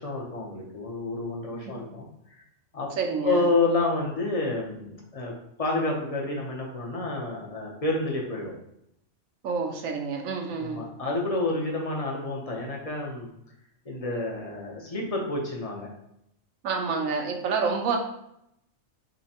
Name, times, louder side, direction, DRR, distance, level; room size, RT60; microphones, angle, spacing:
voice 1, 0.0-2.4 2.7-2.9 3.2-5.3 5.6-8.5 10.5-13.3 13.8-15.9, left 2 dB, 35° left, -1 dB, 0.6 m, -29 dB
voice 2, 3.0-3.4 9.4-10.8 16.6-18.0, right 5 dB, 75° right, 3 dB, 1.1 m, -28 dB
6.4 x 2.2 x 2.8 m, 0.78 s
omnidirectional pair, 1.5 m